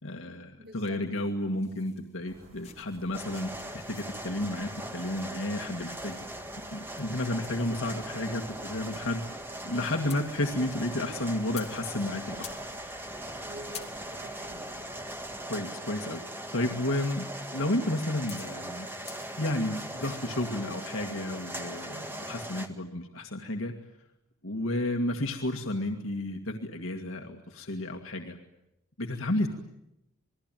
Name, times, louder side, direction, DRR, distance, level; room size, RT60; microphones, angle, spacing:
voice 1, 0.0-6.2 6.7-9.2 9.6-12.4 15.5-16.2 16.5-17.3 17.5-18.9 19.4-23.8 24.4-28.4 29.0-29.5, left 1 dB, 65° left, 2.0 m, -32 dB
voice 2, 0.6-1.0 13.4-14.9, right 1 dB, 50° right, 2.8 m, -47 dB
sound 1, 0.8-20.5, left 8 dB, 30° left, 3.0 m, -53 dB
sound 2, 2.3-15.5, right 1 dB, 80° right, 6.4 m, -55 dB
sound 3, 3.1-22.7, right 1 dB, 10° right, 1.9 m, -40 dB
28.0 x 21.0 x 9.1 m
head